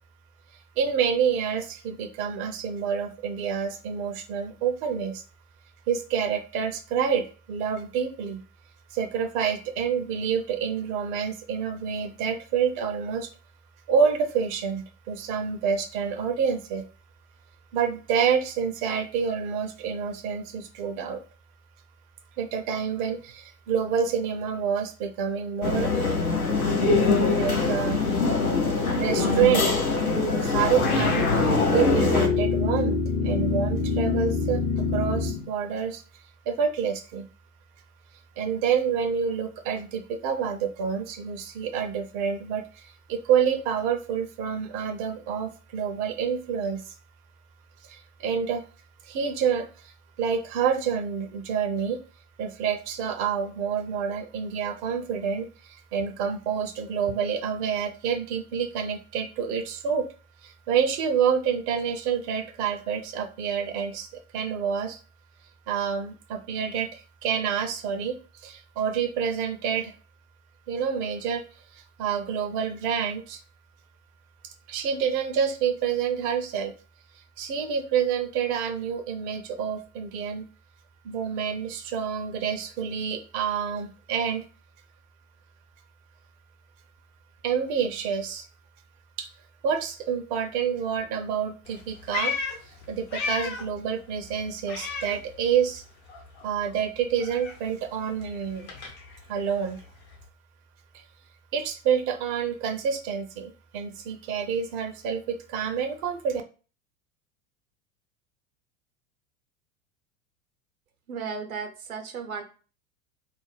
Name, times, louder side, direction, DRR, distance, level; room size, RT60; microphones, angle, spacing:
voice 1, 0.8-5.2 5.9-8.4 8.9-13.3 13.9-16.8 17.7-21.2 22.4-26.1 27.3-28.0 29.0-29.7 30.4-33.0 33.2-36.0 36.5-37.2 38.4-46.9 47.9-48.6 49.0-49.9 50.2-52.0 52.4-60.1 60.4-64.1 64.3-65.0 65.7-69.9 70.7-71.4 71.7-73.4 74.7-76.7 77.4-80.4 81.0-84.4 87.4-88.4 89.2-89.3 89.6-92.3 92.7-95.8 96.4-98.7 99.3-99.8 101.5-106.4, right 7 dB, 40° right, 5 dB, 0.5 m, -28 dB
sound 1, 25.6-32.3, left 3 dB, 85° left, 0.8 m, -23 dB
sound 2, 30.8-35.5, left 4 dB, 25° left, 0.5 m, -25 dB
Meow, 91.7-93.8 94.1-95.8 96.1-100.3, left 4 dB, 50° left, 0.8 m, -36 dB
voice 2, 111.1-112.4, right 5 dB, 80° right, 5 dB, 0.7 m, -34 dB
2.4 x 2.0 x 3.2 m, 0.37 s
figure-of-eight pair, 85°, 43 cm